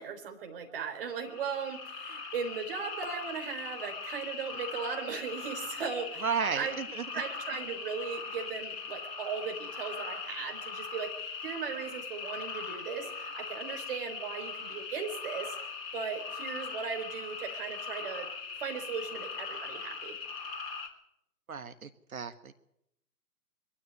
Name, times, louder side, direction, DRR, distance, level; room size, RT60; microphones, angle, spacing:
voice 1, 0.0-6.3 6.5-6.7 7.1-15.6 15.9-18.3 18.6-20.2, right 6 dB, 35° right, 3 dB, 4.1 m, -37 dB
sound 1, 1.1-20.9, left 5 dB, 35° left, 3.6 m, -40 dB
voice 2, 6.2-7.0 21.5-22.5, right 6 dB, 60° right, 10 dB, 1.7 m, -33 dB
22.5 x 13.0 x 9.7 m, 0.78 s
figure-of-eight pair, 135°, 48 cm